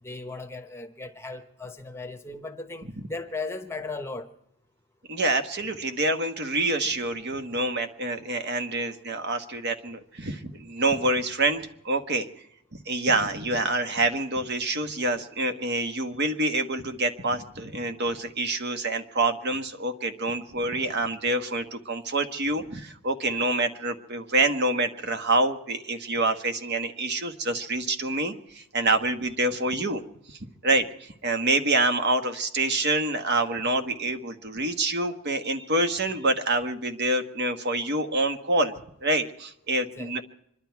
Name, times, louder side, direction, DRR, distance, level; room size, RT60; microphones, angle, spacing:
voice 1, 0.0-4.3 40.0-40.2, left 3 dB, 10° left, 1.0 m, -37 dB
voice 2, 5.1-12.3 12.9-30.0 30.6-38.7 39.0-40.2, right 2 dB, 50° right, 1.3 m, -26 dB
26.5 x 11.5 x 4.6 m
head